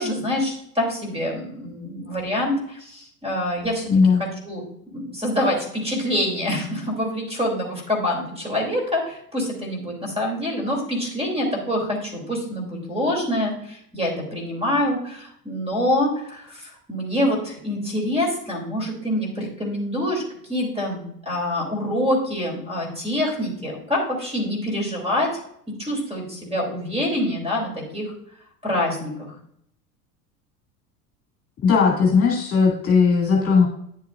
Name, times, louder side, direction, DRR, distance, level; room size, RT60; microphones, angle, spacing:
voice 1, 0.0-3.9 4.2-4.6 4.9-20.2 20.5-25.3 25.8-28.1 28.6-29.3, left 1 dB, 15° right, 0 dB, 3.2 m, -26 dB
voice 2, 3.9-4.2 31.6-33.7, left 5 dB, 30° left, -2 dB, 2.3 m, -17 dB
10.0 x 7.2 x 2.5 m, 0.69 s
hypercardioid pair, 85°, 46 cm